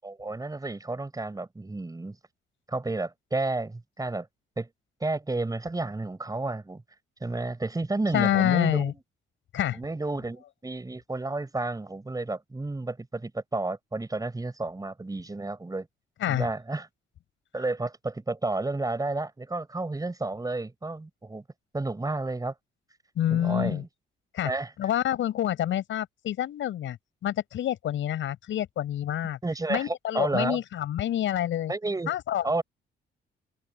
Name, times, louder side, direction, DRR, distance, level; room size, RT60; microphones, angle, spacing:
voice 1, 0.0-2.2 2.7-4.3 4.6-4.7 5.0-6.8 7.2-8.9 9.7-15.9 16.3-16.9 17.5-21.4 21.7-22.5 23.3-23.9 24.4-24.7 29.4-30.6 31.7-32.1 32.4-32.6, right 2 dB, 20° right, 5.9 m, -31 dB
voice 2, 8.1-8.9 9.5-9.8 16.2-16.5 23.2-23.8 24.3-24.5 24.8-27.0 27.2-29.4 29.7-31.7 32.1-32.4, left 11 dB, 75° left, 7.3 m, -27 dB
cardioid pair, 90°, 20 cm